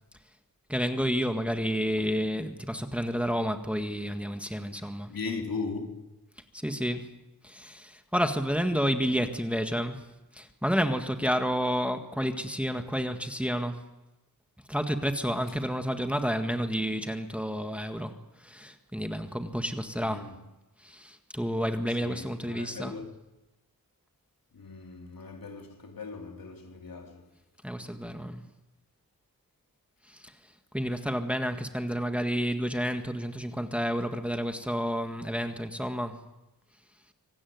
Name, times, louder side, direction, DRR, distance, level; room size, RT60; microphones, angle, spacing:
voice 1, 0.7-5.1 6.5-7.1 7.4-10.0 10.3-13.8 14.7-20.3 20.8-23.0 27.6-28.4 30.0-30.3 30.7-36.2, equal, 5° right, 1.7 m, -30 dB
voice 2, 5.1-6.0 7.6-7.8 20.0-20.4 22.0-23.1 24.5-27.3, left 4 dB, 70° left, 3.8 m, -38 dB
25.5 x 18.0 x 9.5 m
wide cardioid pair, 120°, 36 cm